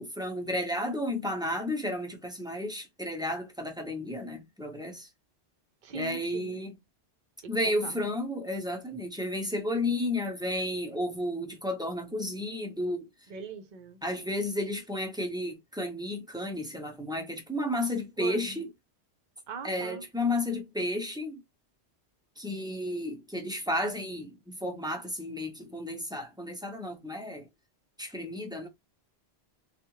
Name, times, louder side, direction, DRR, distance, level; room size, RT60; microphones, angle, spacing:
voice 1, 0.0-5.1 5.9-6.7 7.5-13.1 14.0-18.7 19.6-21.4 22.4-27.5 28.0-28.7, left 1 dB, 5° right, 0.8 m, -32 dB
voice 2, 5.8-6.6 7.4-8.0 13.3-14.0 18.2-18.6 19.5-20.1, right 5 dB, 50° right, 0.8 m, -41 dB
3.4 x 2.4 x 3.0 m
omnidirectional pair, 1.1 m